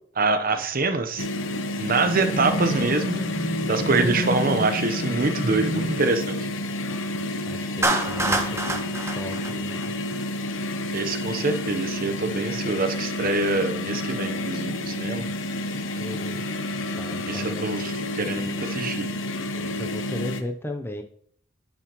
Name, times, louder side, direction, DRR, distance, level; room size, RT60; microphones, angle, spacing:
voice 1, 0.2-1.3 1.8-3.2 3.7-6.4 10.9-15.2 17.3-19.1, right 3 dB, 45° right, 8 dB, 1.0 m, -25 dB
sound 1, 1.2-20.4, left 1 dB, 85° left, 0.9 m, -30 dB
sound 2, 2.1-6.1, equal, 40° left, 1.4 m, -30 dB
voice 2, 7.1-8.8 9.1-9.9 16.0-16.5 17.0-17.7 19.6-21.0, left 1 dB, 10° left, 5 dB, 0.7 m, -36 dB
Clapping, 7.8-10.2, right 2 dB, 15° right, 1.1 m, -26 dB
10.5 x 7.1 x 3.1 m, 0.62 s
head